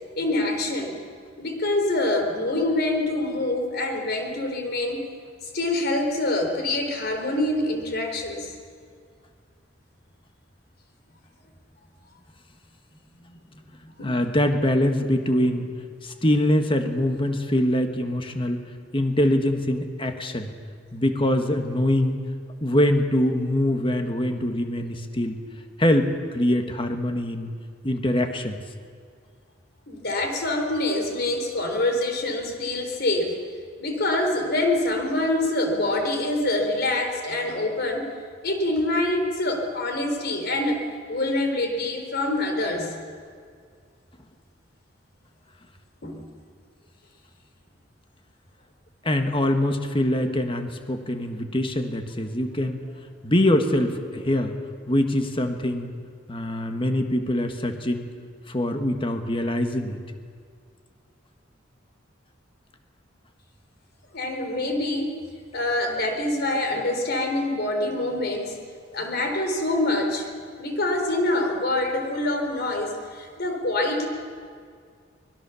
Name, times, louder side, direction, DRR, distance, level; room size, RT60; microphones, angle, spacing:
voice 1, 0.2-1.0 1.4-5.1 5.4-8.5 14.0-14.1 29.9-33.4 33.8-38.1 38.4-40.8 41.1-43.0 46.0-46.2 64.1-65.1 65.5-68.6 68.9-70.3 70.6-74.1, left 2 dB, 55° left, 4 dB, 3.8 m, -25 dB
voice 2, 13.8-15.7 16.0-18.7 18.9-20.5 20.9-22.2 22.6-25.4 25.8-27.5 27.8-28.6 49.0-52.8 53.2-54.6 54.9-55.9 56.3-58.1 58.5-60.0, left 1 dB, 25° left, 6 dB, 1.6 m, -23 dB
24.5 x 20.5 x 7.1 m, 2.1 s
head